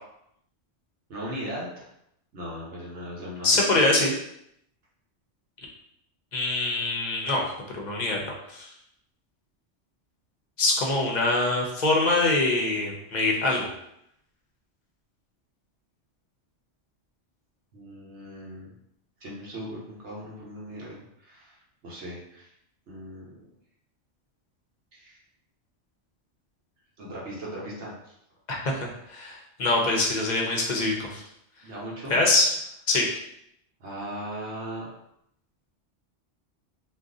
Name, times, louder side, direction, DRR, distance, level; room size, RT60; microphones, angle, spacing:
voice 1, 1.1-1.9 2.3-3.8 8.5-8.7 17.7-18.7 19.2-21.6 21.8-22.5 22.9-23.4 24.9-25.2 27.0-28.1 31.6-32.2 33.8-34.9, equal, 75° right, -5 dB, 1.1 m, -38 dB
voice 2, 3.4-4.1 6.3-7.4 7.7-8.7 10.6-13.7 28.5-31.2 32.1-32.5 32.9-33.1, left 2 dB, 50° left, -1 dB, 0.6 m, -24 dB
2.5 x 2.3 x 3.6 m, 0.77 s
omnidirectional pair, 1.2 m